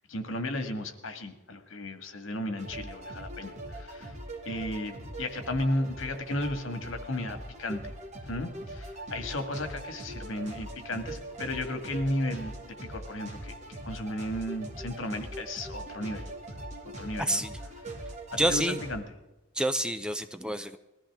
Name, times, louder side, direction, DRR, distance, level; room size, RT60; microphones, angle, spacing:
voice 1, 0.1-4.1 4.5-7.9 8.2-16.2 17.0-17.4 18.3-19.0, left 1 dB, 85° left, 7 dB, 1.8 m, -34 dB
sound 1, 2.6-18.9, right 1 dB, 35° right, 2.2 m, -41 dB
voice 2, 17.2-17.5 18.4-18.8 19.6-20.8, right 1 dB, 5° right, 9 dB, 0.5 m, -28 dB
20.5 x 14.5 x 3.6 m, 1.0 s
head